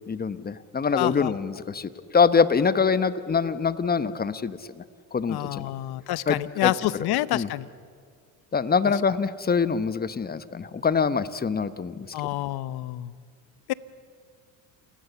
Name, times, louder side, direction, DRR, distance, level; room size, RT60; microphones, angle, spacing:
voice 1, 0.1-4.6 5.1-5.7 6.3-6.7 7.3-7.5 8.5-12.1, left 5 dB, 20° left, 14 dB, 1.0 m, -24 dB
voice 2, 0.9-1.4 5.3-7.7 8.9-9.0 12.1-13.1 13.7-13.8, left 15 dB, 60° left, 18 dB, 0.9 m, -28 dB
30.0 x 20.0 x 7.0 m, 2.1 s
supercardioid pair, 95°, 42 cm